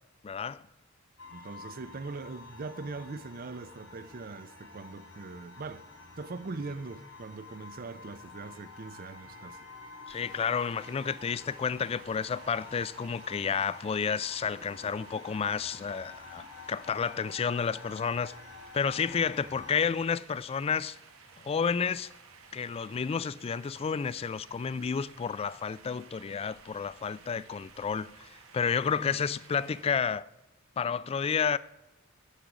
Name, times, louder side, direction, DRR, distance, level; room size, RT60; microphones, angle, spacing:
voice 1, 0.2-0.6 10.1-18.3 18.7-21.0 21.4-22.1 22.5-30.3 30.8-31.6, left 6 dB, 30° left, 0.3 m, -31 dB
sound 1, 1.2-19.8, left 4 dB, 75° left, 2.9 m, -49 dB
voice 2, 1.3-5.8 6.2-9.7, right 3 dB, 45° right, 0.5 m, -41 dB
sound 2, 10.1-29.9, right 5 dB, 90° right, 1.7 m, -55 dB
10.0 x 8.2 x 6.0 m
head